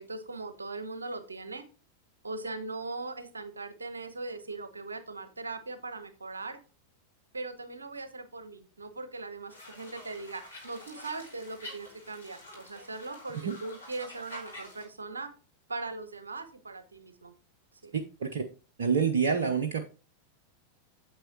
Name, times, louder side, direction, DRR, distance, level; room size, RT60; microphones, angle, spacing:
voice 1, 0.0-1.6 2.2-6.6 7.3-15.3 15.7-17.3 17.8-17.9, right 3 dB, 75° right, 11 dB, 1.0 m, -40 dB
sound 1, 9.5-14.8, left 1 dB, 80° left, 3.0 m, -48 dB
voice 2, 17.9-18.4 18.8-19.9, right 6 dB, 60° right, 5 dB, 0.7 m, -27 dB
9.0 x 7.8 x 2.9 m, 0.33 s
figure-of-eight pair, 90°, 0 cm